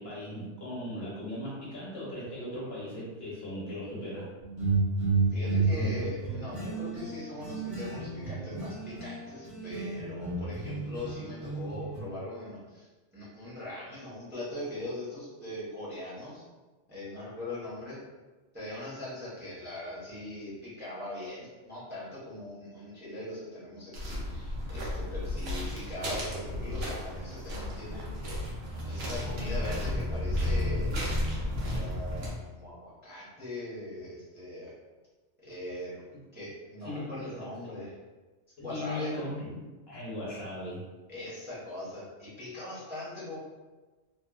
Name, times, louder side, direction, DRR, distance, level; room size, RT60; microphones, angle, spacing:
voice 1, 0.0-4.3 36.8-37.3 38.6-40.8, left 1 dB, 60° left, -7 dB, 1.2 m, -38 dB
sound 1, 4.4-9.2 9.4-12.0, right 3 dB, 45° right, 1.0 m, -31 dB
voice 2, 5.3-16.4 16.9-18.0 18.5-28.2 28.9-30.9 31.5-34.7 35.4-35.9 36.3-37.9 38.6-39.1 41.1-43.4, left 1 dB, 10° right, -10 dB, 0.7 m, -40 dB
sound 2, 23.9-32.3, left 1 dB, 85° right, 1.0 m, -33 dB
2.9 x 2.2 x 2.3 m, 1.2 s
omnidirectional pair, 1.2 m